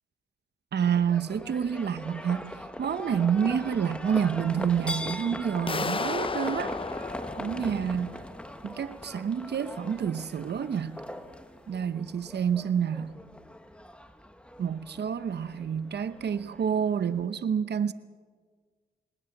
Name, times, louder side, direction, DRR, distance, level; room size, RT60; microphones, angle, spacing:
voice 1, 0.7-6.8 7.4-8.2 8.6-11.0 11.7-13.1 14.6-17.9, right 7 dB, 65° right, 0.9 m, -28 dB
Livestock farm animals working animals, 0.8-17.3, left 1 dB, 5° left, 1.5 m, -41 dB
sound 1, 5.7-8.5, left 4 dB, 30° left, 0.6 m, -33 dB
20.0 x 19.5 x 7.2 m
cardioid pair, 65°, 18 cm